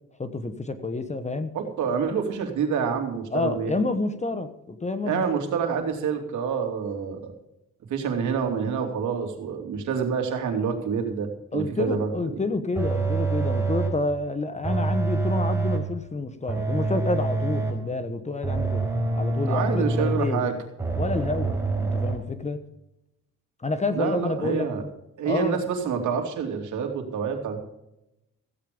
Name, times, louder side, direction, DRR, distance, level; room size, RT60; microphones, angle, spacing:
voice 1, 0.2-1.5 3.3-5.2 11.5-18.8 19.1-20.4 21.0-22.6 23.6-24.9 25.3-25.6, left 3 dB, 25° left, 10 dB, 1.1 m, -29 dB
voice 2, 1.5-3.7 5.0-7.3 7.9-12.4 19.5-20.6 23.9-24.8 25.2-27.6, right 6 dB, 75° right, 4 dB, 2.9 m, -27 dB
sound 1, 12.8-14.1 14.6-16.0 16.5-17.9 18.4-20.3 20.8-22.2, right 3 dB, 10° right, 4.6 m, -26 dB
16.0 x 8.6 x 5.1 m, 0.87 s
cardioid pair, 90°, 30 cm